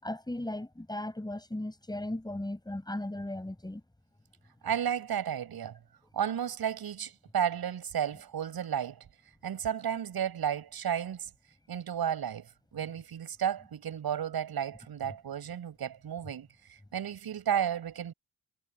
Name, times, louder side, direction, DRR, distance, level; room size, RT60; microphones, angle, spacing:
voice 1, 0.0-3.8, left 1 dB, 10° left, 6.9 m, -36 dB
voice 2, 4.6-5.8 6.1-9.0 9.4-11.3 11.7-18.1, right 9 dB, 70° right, 6.6 m, -33 dB
cardioid pair, 95°, 39 cm